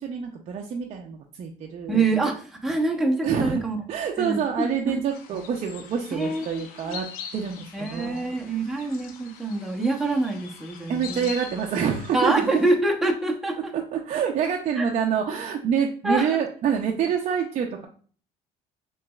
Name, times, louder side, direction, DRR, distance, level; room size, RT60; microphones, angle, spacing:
voice 1, 0.0-2.0 3.2-3.6 3.9-8.3 8.7-8.9 10.9-12.7 13.7-17.9, right 7 dB, 50° right, 1 dB, 0.5 m, -27 dB
voice 2, 1.9-3.8 4.2-5.0 5.3-5.4 6.1-7.0 7.7-11.3 12.1-13.7 14.8-14.9 16.0-16.3, right 2 dB, 5° right, 0 dB, 0.8 m, -26 dB
sound 1, 5.1-12.8, left 7 dB, 80° left, 0.6 m, -43 dB
5.7 x 3.1 x 2.3 m, 0.43 s
cardioid pair, 115°, 15 cm